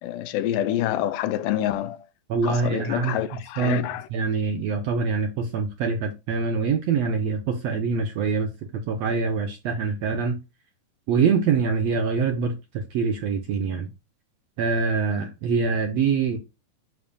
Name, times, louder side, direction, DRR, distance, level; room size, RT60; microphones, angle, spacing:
voice 1, 0.0-2.0 2.4-4.1, left 12 dB, 85° left, 2.2 m, -27 dB
voice 2, 2.3-3.1 3.6-3.8 4.1-10.4 11.1-13.9 14.6-16.4, right 5 dB, 70° right, 1.6 m, -24 dB
7.1 x 6.6 x 2.3 m
omnidirectional pair, 3.9 m